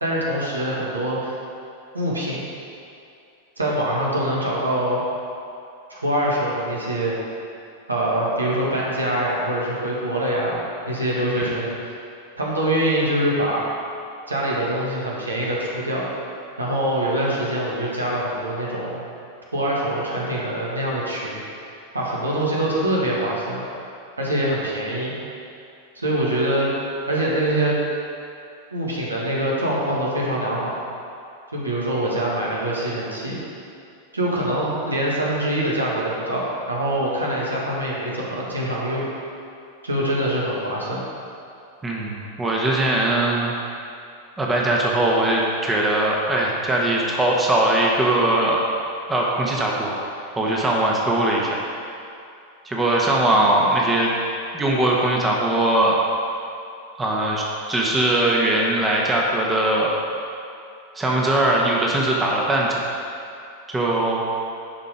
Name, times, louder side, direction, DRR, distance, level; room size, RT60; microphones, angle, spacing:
voice 1, 0.0-1.3 1.9-2.4 3.6-5.0 5.9-7.2 7.9-12.0 12.4-13.7 14.3-16.1 16.6-19.0 19.5-21.4 21.9-23.6 24.2-25.2 26.0-26.7 27.1-27.8 28.7-30.8 31.5-33.4 34.1-39.1 39.8-41.0, right 1 dB, 80° right, -4 dB, 1.9 m, -24 dB
voice 2, 41.8-43.5 44.4-48.6 49.1-49.9 50.4-51.6 52.6-54.1 54.5-56.0 57.0-60.0 60.9-62.8 63.7-64.4, right 1 dB, 15° right, -3 dB, 1.3 m, -20 dB
11.0 x 5.4 x 5.0 m, 2.6 s
figure-of-eight pair, 90°, 0 cm